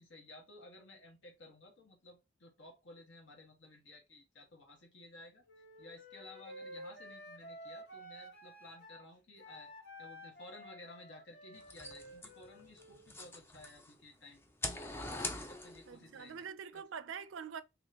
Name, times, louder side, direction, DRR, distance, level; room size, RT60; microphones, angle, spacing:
voice 1, 0.0-5.4 5.8-9.7 10.0-14.4 15.1-16.5 16.7-16.8, left 2 dB, 75° left, 1.3 m, -55 dB
Wind instrument woodwind instrument, 5.5-9.0 9.4-13.1, equal, 55° left, 1.1 m, -52 dB
sound 1, 11.6-14.0 14.4-16.0, left 2 dB, 10° left, 0.4 m, -42 dB
voice 2, 15.9-17.6, right 6 dB, 80° right, 0.4 m, -44 dB
2.9 x 2.9 x 4.1 m
head